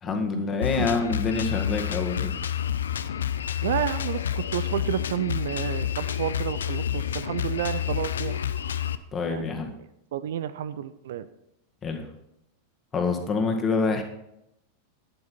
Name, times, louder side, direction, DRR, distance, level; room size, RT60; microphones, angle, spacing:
voice 1, 0.0-2.3 9.1-9.7 11.8-12.1 12.9-14.0, left 4 dB, 20° left, 3 dB, 1.9 m, -26 dB
Drum kit, 0.6-8.9, left 9 dB, 65° left, 0.6 m, -29 dB
voice 2, 3.6-8.4 9.3-9.6 10.1-11.3, right 11 dB, 55° right, 14 dB, 0.6 m, -30 dB
12.5 x 11.0 x 4.4 m, 0.82 s
figure-of-eight pair, 90°, 0 cm